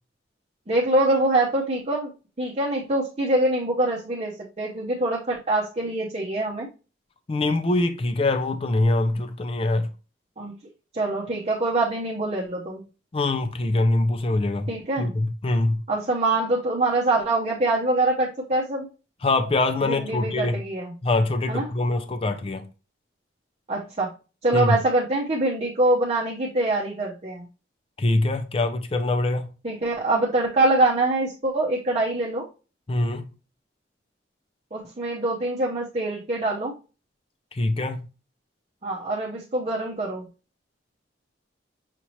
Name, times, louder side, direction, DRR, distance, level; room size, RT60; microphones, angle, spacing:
voice 1, 0.7-2.1 2.4-6.7 10.4-10.5 10.9-12.8 14.7-15.1 15.9-18.9 19.8-20.9 21.5-21.7 23.7-24.1 24.4-27.5 29.6-32.5 34.7-36.7 38.8-40.2, right 2 dB, 35° right, 0.7 m, -24 dB
voice 2, 7.3-9.9 13.1-15.8 19.2-20.6 21.0-22.7 24.5-24.7 28.0-29.5 32.9-33.2 37.5-38.0, left 2 dB, 30° left, 0.4 m, -24 dB
5.8 x 2.8 x 3.0 m
head